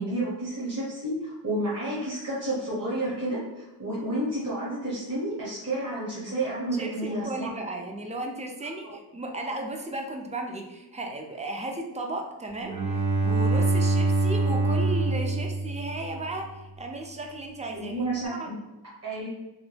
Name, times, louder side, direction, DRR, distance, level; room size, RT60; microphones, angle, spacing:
voice 1, 0.0-7.5 8.8-8.9 17.7-18.5 19.0-19.3, right 1 dB, 40° right, -7 dB, 0.9 m, -30 dB
voice 2, 6.5-12.8 13.2-18.5, right 2 dB, 20° right, 3 dB, 0.4 m, -35 dB
Bowed string instrument, 12.6-16.4, right 3 dB, 80° right, 0.9 m, -25 dB
2.9 x 2.2 x 3.3 m, 0.98 s
wide cardioid pair, 100°, 41 cm